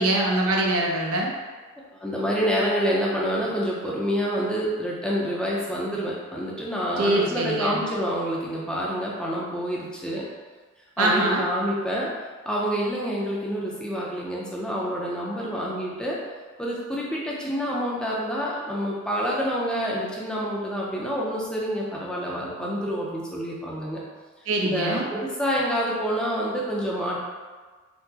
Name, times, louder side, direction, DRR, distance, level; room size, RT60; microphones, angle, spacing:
voice 1, 0.0-1.3 7.0-7.8 11.0-11.5 22.6-22.7 24.5-25.1, right 2 dB, 85° right, -1 dB, 0.6 m, -23 dB
voice 2, 2.0-10.3 11.0-12.1 12.5-16.2 16.6-24.0 24.6-27.2, equal, 5° left, -5 dB, 0.4 m, -27 dB
4.4 x 2.0 x 2.7 m, 1.4 s
head